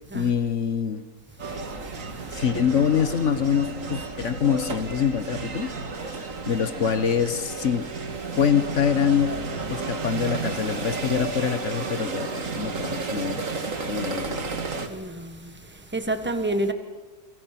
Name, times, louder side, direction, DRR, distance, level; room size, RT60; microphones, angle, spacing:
voice 1, 0.1-1.0 2.3-5.7 6.0-7.9 8.3-9.3 9.7-13.4 13.9-14.5, left 7 dB, 50° left, 1.3 m, -25 dB
sound 1, 1.4-14.9, right 4 dB, 50° right, 2.2 m, -32 dB
voice 2, 14.9-15.5 15.9-16.7, right 1 dB, 5° right, 1.5 m, -28 dB
28.5 x 26.5 x 6.0 m
omnidirectional pair, 1.8 m